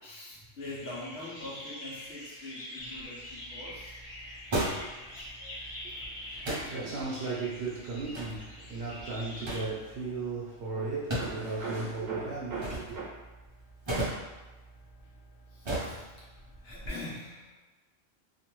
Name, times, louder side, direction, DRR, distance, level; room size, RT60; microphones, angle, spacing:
voice 1, 0.0-3.2 3.5-3.9 5.1-5.3 15.5-16.3 16.6-17.5, left 2 dB, 65° left, -6 dB, 1.1 m, -43 dB
sound 1, 0.6-9.6, left 1 dB, 45° left, 0.5 m, -44 dB
sound 2, 2.8-16.9, right 1 dB, 35° right, 0.4 m, -39 dB
voice 2, 5.8-13.1, right 3 dB, 65° right, -6 dB, 0.8 m, -36 dB
2.7 x 2.2 x 3.0 m, 1.2 s
omnidirectional pair, 1.3 m